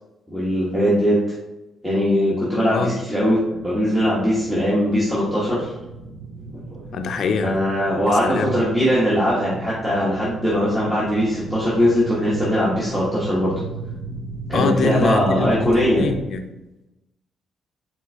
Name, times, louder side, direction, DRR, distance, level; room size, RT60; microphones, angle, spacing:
voice 1, 0.3-1.2 1.8-3.4 3.6-5.7 6.5-6.8 7.4-13.5 14.5-16.0, equal, 5° right, -9 dB, 1.3 m, -20 dB
sound 1, 3.1-16.2, right 3 dB, 80° right, 0.6 m, -36 dB
voice 2, 6.9-7.6 8.1-8.6 14.5-15.7 16.0-16.4, left 4 dB, 60° left, 6 dB, 0.5 m, -23 dB
4.4 x 4.3 x 2.3 m, 0.99 s
cardioid pair, 90°, 0 cm